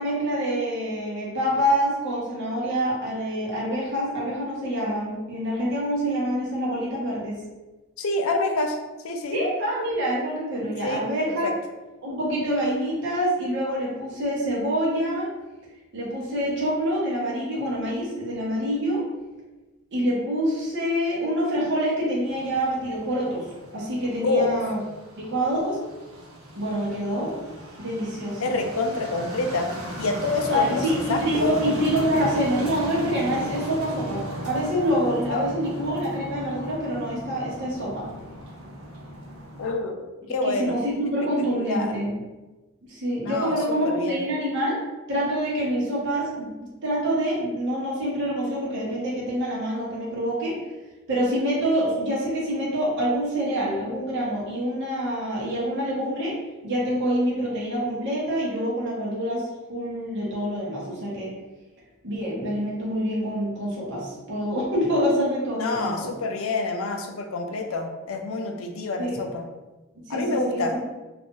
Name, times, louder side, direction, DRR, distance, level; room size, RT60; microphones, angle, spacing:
voice 1, 0.0-7.4 9.3-11.5 12.0-15.3 15.9-19.0 19.9-23.4 23.7-24.8 25.2-25.8 26.5-27.3 27.8-28.6 30.5-38.1 40.4-42.1 42.9-44.8 45.1-46.5 46.8-50.6 51.1-56.3 56.6-61.3 62.0-66.1 69.0-69.2 69.9-70.8, equal, 55° right, -5 dB, 1.0 m, -26 dB
voice 2, 8.0-8.8 9.0-9.4 10.8-11.0 11.3-11.5 24.2-24.6 28.4-29.7 30.0-30.8 31.1-31.5 35.3-35.5 39.6-40.8 41.5-41.9 43.2-44.2 65.6-69.4 70.1-70.7, left 3 dB, 75° left, 5 dB, 0.5 m, -27 dB
sound 1, 22.3-39.7, equal, 90° right, 0.7 m, -37 dB
2.6 x 2.5 x 3.6 m, 1.1 s
head